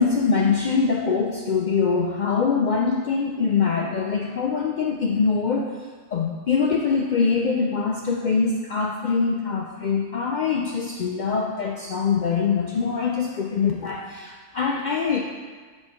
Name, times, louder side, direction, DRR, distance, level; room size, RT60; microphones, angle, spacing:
voice 1, 0.0-5.7 6.1-15.2, left 5 dB, 75° left, 0 dB, 0.4 m, -23 dB
7.0 x 3.3 x 5.7 m, 1.5 s
omnidirectional pair, 1.3 m